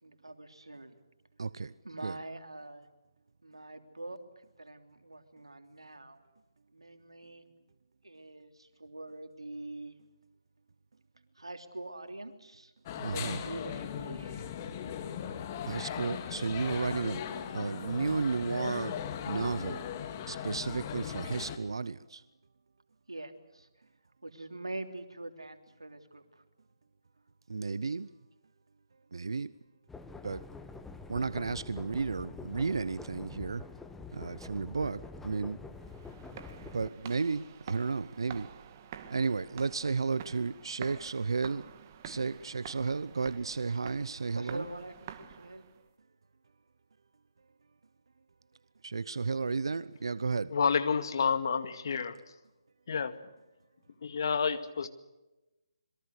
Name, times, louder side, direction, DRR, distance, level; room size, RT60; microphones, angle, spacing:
voice 1, 0.0-1.0 1.8-2.9 3.4-6.2 6.7-7.5 8.0-10.0 11.3-12.7 13.1-14.4 23.1-23.7 24.2-26.4 44.3-45.6, right 2 dB, 90° right, 3.2 m, -44 dB
voice 2, 1.4-1.7 2.0-2.2 12.9-13.4 15.7-17.2 17.5-19.0 19.3-19.9 20.3-22.2 27.5-28.1 29.1-29.5 30.2-30.4 31.1-33.6 34.1-35.6 36.7-38.5 39.1-41.6 42.0-44.6 48.8-50.5, right 4 dB, 70° right, 0.8 m, -33 dB
sound 1, 12.9-21.6, left 8 dB, 30° left, 2.2 m, -38 dB
sound 2, 29.9-36.9, left 4 dB, 5° left, 1.3 m, -46 dB
sound 3, 35.8-45.8, right 8 dB, 35° right, 1.8 m, -49 dB
voice 3, 50.5-52.2 52.9-53.1 54.0-54.9, left 6 dB, 55° left, 2.1 m, -29 dB
27.0 x 22.5 x 6.6 m
figure-of-eight pair, 150°, 3 cm